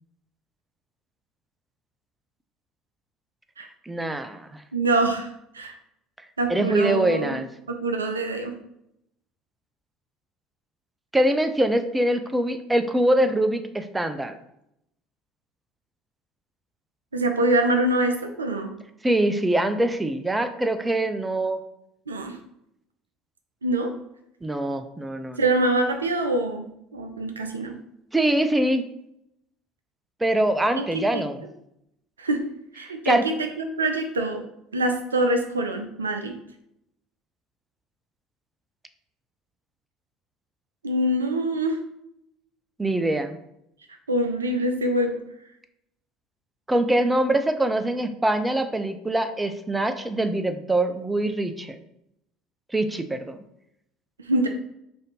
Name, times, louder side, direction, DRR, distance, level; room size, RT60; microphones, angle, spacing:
voice 1, 3.9-4.5 6.5-7.5 11.1-14.3 19.0-21.6 24.4-25.4 28.1-28.8 30.2-31.4 33.1-33.2 42.8-43.4 46.7-51.8 52.7-53.4, right 1 dB, 10° right, 8 dB, 0.4 m, -23 dB
voice 2, 4.7-5.3 5.5-5.8 6.4-7.4 7.7-8.5 17.1-18.7 22.1-22.4 23.6-23.9 25.4-26.6 26.9-27.7 30.7-30.8 31.1-31.2 32.2-32.5 32.7-34.4 34.7-36.3 40.8-41.8 44.1-45.2 54.3-54.5, right 1 dB, 85° right, 5 dB, 0.4 m, -24 dB
3.4 x 2.6 x 3.9 m, 0.78 s
figure-of-eight pair, 65°, 0 cm